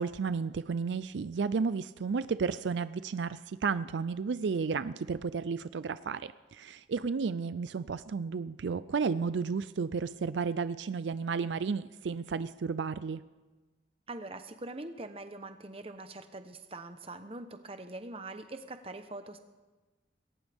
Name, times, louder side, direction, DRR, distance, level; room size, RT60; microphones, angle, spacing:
voice 1, 0.0-13.2, right 5 dB, 80° right, 14 dB, 0.4 m, -32 dB
voice 2, 14.1-19.4, right 2 dB, 30° right, 8 dB, 0.9 m, -43 dB
21.0 x 18.0 x 3.6 m, 1.2 s
head